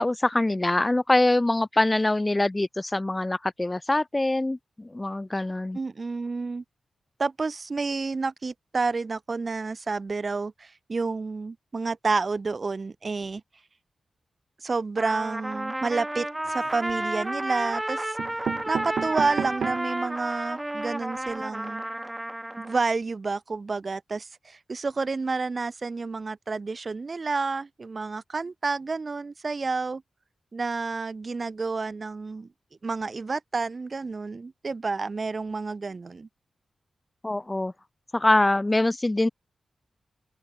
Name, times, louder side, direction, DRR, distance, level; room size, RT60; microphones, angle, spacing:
voice 1, 0.0-4.6 4.9-5.8 37.2-37.7 38.1-39.3, left 2 dB, 20° left, 1.8 m, -24 dB
voice 2, 5.7-6.6 7.2-13.4 14.6-18.2 18.7-21.8 22.6-30.0 30.5-32.5 32.8-36.3, right 4 dB, 40° right, 5.5 m, -30 dB
Trumpet, 15.0-22.8, right 1 dB, 10° right, 1.1 m, -32 dB
sound 1, 16.4-17.1 17.8-17.9 18.2-20.0 20.5-20.6 20.8-20.9 21.2-21.3, right 7 dB, 80° right, 4.0 m, -33 dB
open air
wide cardioid pair, 95°, 0 cm